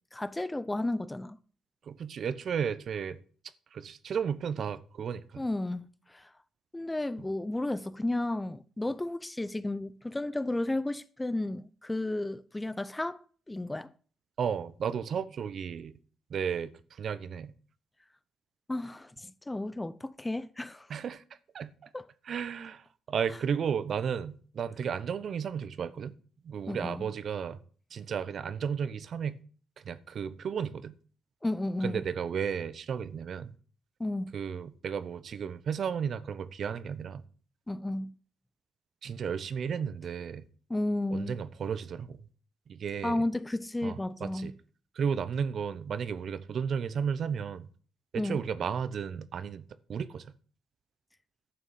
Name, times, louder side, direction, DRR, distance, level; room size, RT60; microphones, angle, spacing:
voice 1, 0.1-1.4 5.4-6.3 6.7-13.2 13.5-13.9 18.7-20.9 21.9-22.0 26.7-27.1 31.4-32.0 34.0-34.3 37.7-38.1 40.7-41.4 43.0-44.5 48.2-48.4, left 2 dB, 15° left, 0.6 m, -33 dB
voice 2, 1.9-3.2 3.7-5.4 14.4-16.0 16.3-17.5 20.9-21.2 21.5-21.9 22.2-26.1 26.4-27.6 27.9-29.4 29.8-31.0 31.8-33.5 34.3-37.2 39.0-40.4 41.1-42.2 42.7-43.2 43.8-44.5 44.9-47.7 48.1-50.3, right 7 dB, 55° right, 0.9 m, -33 dB
11.5 x 6.3 x 8.6 m
cardioid pair, 90°, 0 cm